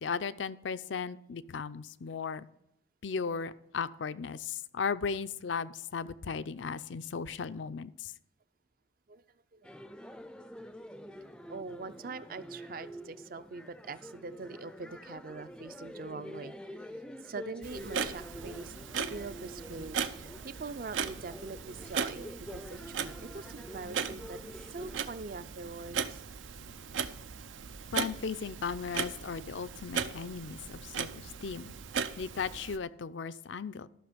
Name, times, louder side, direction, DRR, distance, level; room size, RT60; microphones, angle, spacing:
voice 1, 0.0-2.5 3.0-8.1 27.9-31.7 32.2-33.9, left 5 dB, 75° left, 15 dB, 0.5 m, -36 dB
sound 1, 9.6-25.0, equal, 5° left, 0.4 m, -47 dB
voice 2, 11.4-16.9 17.2-18.7 19.1-24.4 24.7-26.2, right 4 dB, 50° right, 13 dB, 0.5 m, -43 dB
Clock, 17.6-32.8, right 6 dB, 90° right, 0.6 m, -38 dB
13.5 x 6.2 x 5.1 m, 0.81 s
head